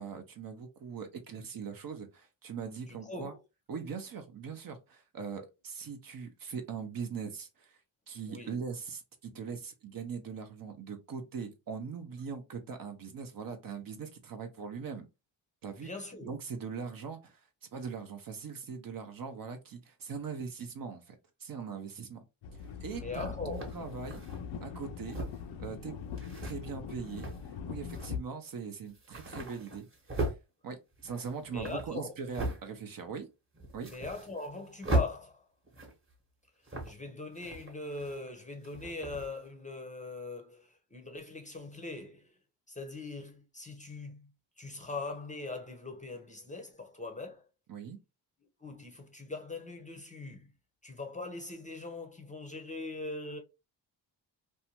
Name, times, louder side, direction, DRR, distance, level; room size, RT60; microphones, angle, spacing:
voice 1, 0.0-3.3 3.7-7.8 8.1-15.1 15.6-15.9 16.2-17.4 17.7-22.2 22.8-24.2 24.6-25.2 25.6-25.9 26.4-27.3 27.7-29.9 30.2-30.3 30.6-33.3 33.7-33.9 47.7-48.0, right 6 dB, 45° right, 0.6 m, -41 dB
voice 2, 2.9-3.4 8.3-8.6 15.8-16.4 22.0-22.1 22.9-23.7 31.5-32.1 33.9-35.4 36.8-42.3 42.7-44.3 44.6-47.4 48.6-50.5 50.8-53.4, left 3 dB, 15° left, 0.6 m, -41 dB
sound 1, 22.4-28.2, left 7 dB, 75° left, 0.5 m, -42 dB
sound 2, 22.7-22.8 23.5-24.4 25.0-25.5 26.2-26.6 27.1-27.5 27.9-28.1 28.5-28.6 28.9-30.4 30.9-32.6 33.0-33.1 33.5-34.6 34.8-35.1 35.7-36.1 36.7-37.1 37.3-38.3 38.6-39.3, right 1 dB, 25° right, 1.0 m, -37 dB
2.6 x 2.2 x 2.8 m
cardioid pair, 80°, 47 cm